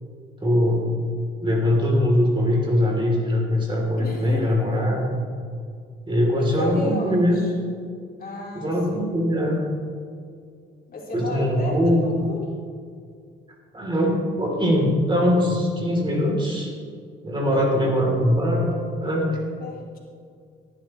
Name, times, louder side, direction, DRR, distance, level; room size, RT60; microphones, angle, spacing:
voice 1, 0.4-0.9 1.4-5.2 6.1-7.4 8.5-9.6 11.1-12.0 13.7-16.7 17.2-19.4, equal, 25° right, -1 dB, 3.2 m, -21 dB
voice 2, 4.0-4.8 6.4-7.5 8.2-9.1 10.9-12.4 17.5-17.9 19.6-20.0, left 2 dB, 45° left, -3 dB, 3.0 m, -34 dB
17.5 x 11.0 x 3.1 m, 2.2 s
cardioid pair, 90°, 20 cm